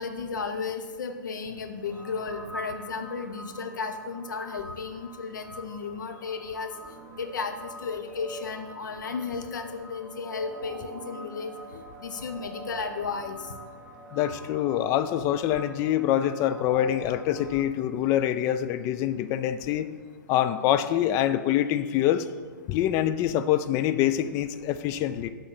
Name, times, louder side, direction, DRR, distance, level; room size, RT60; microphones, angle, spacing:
voice 1, 0.0-6.7 7.2-13.5, left 5 dB, 70° left, 6 dB, 0.8 m, -34 dB
sound 1, 1.8-17.6, right 2 dB, 15° right, 0.8 m, -45 dB
voice 2, 14.1-19.9 20.3-22.3 22.7-25.3, left 11 dB, 30° left, 11 dB, 0.3 m, -25 dB
6.3 x 3.9 x 6.2 m, 1.5 s
figure-of-eight pair, 120°, 10 cm